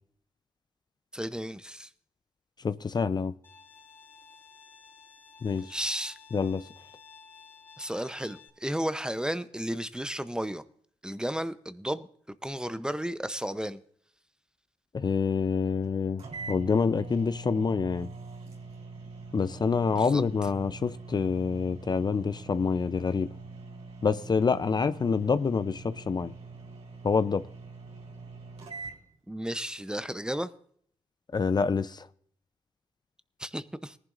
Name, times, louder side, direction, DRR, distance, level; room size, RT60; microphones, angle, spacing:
voice 1, 1.1-1.9 5.5-6.2 7.8-10.6 11.0-12.1 12.4-13.8 19.9-20.2 29.3-30.5 33.4-34.0, equal, 5° right, 0.7 m, -33 dB
voice 2, 2.6-3.3 5.4-5.8 6.3-6.7 14.9-18.1 19.3-23.3 24.0-26.3 27.0-27.4 31.3-32.1, left 5 dB, 40° left, 0.5 m, -27 dB
Bowed string instrument, 3.4-8.5, left 6 dB, 20° left, 2.8 m, -53 dB
sound 1, 15.8-15.9 16.2-29.0, right 4 dB, 70° right, 3.6 m, -44 dB
19.0 x 11.0 x 2.5 m
supercardioid pair, 55°, 11 cm